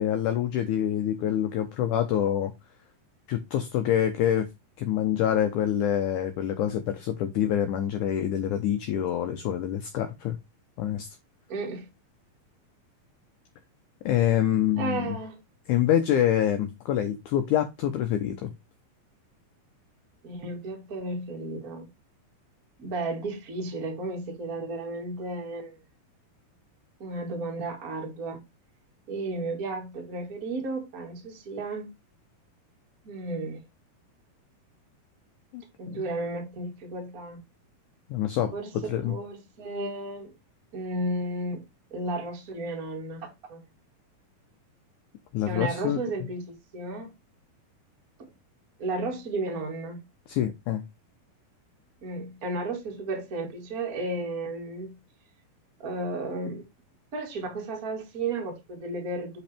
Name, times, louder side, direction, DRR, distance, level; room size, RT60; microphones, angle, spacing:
voice 1, 0.0-2.5 3.3-4.5 4.8-10.4 10.8-11.1 14.1-15.2 15.7-18.5 35.5-36.1 38.1-38.5 38.8-39.2 45.3-46.0 50.3-50.8, left 10 dB, 75° left, 1.9 m, -26 dB
voice 2, 11.5-11.9 14.8-15.4 20.2-21.9 22.8-25.8 27.0-28.4 29.1-31.9 33.0-33.6 35.8-37.4 38.5-38.7 39.0-40.3 40.7-41.6 41.9-43.6 45.5-47.1 48.2-48.3 48.8-50.0 52.0-55.0 55.8-56.6 57.1-59.4, right 2 dB, 30° right, 1.9 m, -33 dB
7.1 x 5.4 x 3.4 m
omnidirectional pair, 4.3 m